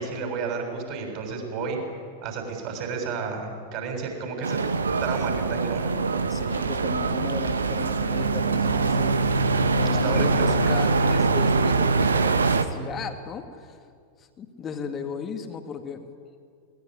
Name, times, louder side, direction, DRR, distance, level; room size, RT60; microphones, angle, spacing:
voice 1, 0.0-1.8 2.2-4.6 5.0-6.0 9.9-10.6, right 5 dB, 45° right, 3 dB, 6.8 m, -31 dB
sound 1, 4.4-12.6, right 3 dB, 75° right, 1.2 m, -23 dB
voice 2, 6.3-9.2 9.7-13.8 14.2-16.1, left 6 dB, 25° left, 6 dB, 2.0 m, -35 dB
21.5 x 19.0 x 10.0 m, 2.2 s
figure-of-eight pair, 90°, 0 cm